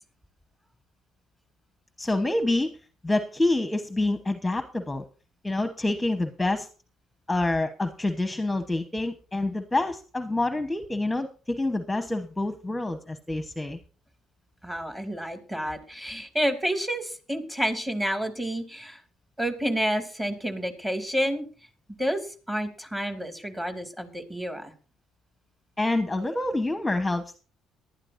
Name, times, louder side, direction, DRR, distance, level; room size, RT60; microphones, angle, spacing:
voice 1, 2.0-2.8 3.0-5.0 5.4-6.7 7.3-13.8 25.8-27.4, left 2 dB, 10° left, 7 dB, 1.0 m, -27 dB
voice 2, 14.6-19.0 19.4-21.5 22.0-24.7, equal, 15° right, 6 dB, 2.5 m, -29 dB
19.0 x 12.0 x 2.6 m, 0.38 s
supercardioid pair, 80°, 0 cm